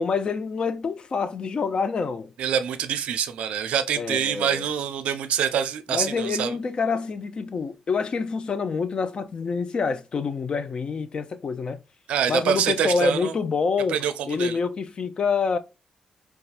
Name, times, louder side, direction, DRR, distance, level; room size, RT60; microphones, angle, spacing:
voice 1, 0.0-2.3 4.0-4.7 5.9-11.8 12.3-14.0 14.3-15.6, left 5 dB, 50° left, 0.4 m, -27 dB
voice 2, 2.4-6.6 12.1-13.3 13.9-14.6, right 8 dB, 90° right, 0.4 m, -25 dB
4.0 x 2.3 x 2.4 m
cardioid pair, 85°, 2 cm